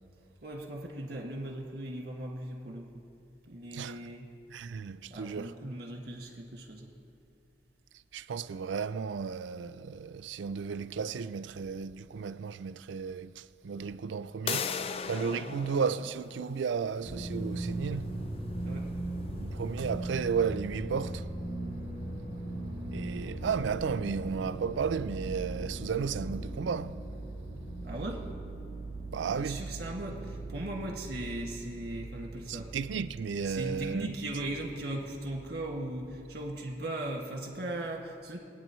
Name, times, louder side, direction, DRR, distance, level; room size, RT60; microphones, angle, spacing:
voice 1, 0.4-3.0 3.5-4.3 5.1-6.9 15.4-15.8 18.6-18.9 27.8-28.2 29.4-32.7 33.4-38.4, right 1 dB, 55° right, 1.9 m, -38 dB
voice 2, 3.7-4.0 4.5-5.5 8.1-14.7 15.1-18.1 19.2-21.3 22.9-27.0 29.1-29.6 32.5-34.1, right 6 dB, 75° right, 0.4 m, -34 dB
sound 1, 14.5-20.1, left 6 dB, 30° left, 0.3 m, -40 dB
sound 2, 17.0-36.1, right 2 dB, 60° left, 2.7 m, -39 dB
24.5 x 9.2 x 3.1 m
head